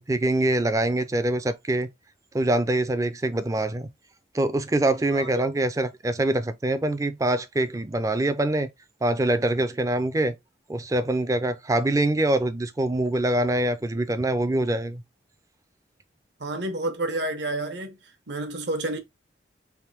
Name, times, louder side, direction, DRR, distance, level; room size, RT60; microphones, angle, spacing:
voice 1, 0.0-1.9 2.3-3.9 4.3-8.7 9.0-10.3 10.7-15.0, right 1 dB, 20° right, 0.3 m, -24 dB
voice 2, 5.1-5.5 16.4-18.0 18.3-19.0, right 2 dB, 75° right, 0.9 m, -29 dB
3.5 x 2.5 x 4.5 m
head